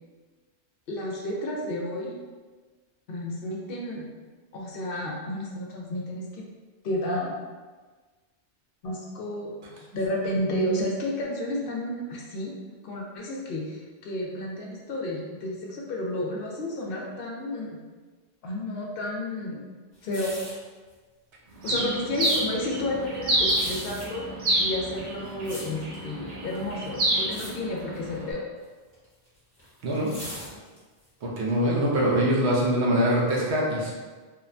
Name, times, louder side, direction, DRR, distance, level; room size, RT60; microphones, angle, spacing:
voice 1, 0.9-2.2 3.1-4.1 4.5-6.4 6.8-7.4 8.8-9.5 9.9-12.5 12.8-17.8 18.4-19.6 20.0-20.3 21.6-24.2 24.6-28.5, left 1 dB, 60° left, -2 dB, 0.7 m, -31 dB
sound 1, 20.0-20.7 21.5-22.4 23.4-24.1 24.9-26.0 26.5-26.9 27.2-27.5 27.8-28.0 28.9-31.0 31.5-31.6, equal, 10° left, 0.8 m, -40 dB
Bird, 21.6-28.3, right 1 dB, 55° right, 0.4 m, -29 dB
voice 2, 29.8-30.1 31.2-33.9, right 1 dB, 75° right, -3 dB, 0.9 m, -24 dB
2.8 x 2.1 x 2.5 m, 1.4 s
omnidirectional pair, 1.2 m